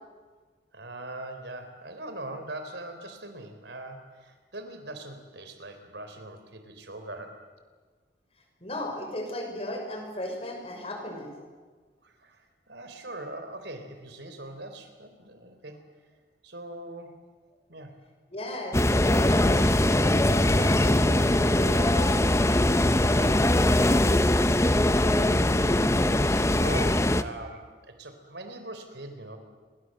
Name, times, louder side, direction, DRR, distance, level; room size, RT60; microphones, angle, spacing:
voice 1, 0.7-7.4 12.0-15.8 16.4-17.2 17.7-18.0 22.6-22.7 24.4-26.2 26.5-29.4, right 1 dB, 70° right, 7 dB, 4.0 m, -41 dB
voice 2, 8.6-11.3 18.3-19.8 20.3-23.7, left 1 dB, 35° left, 3 dB, 5.9 m, -35 dB
sound 1, 18.7-27.2, left 1 dB, 15° left, 0.8 m, -22 dB
27.5 x 23.0 x 7.8 m, 1.4 s
head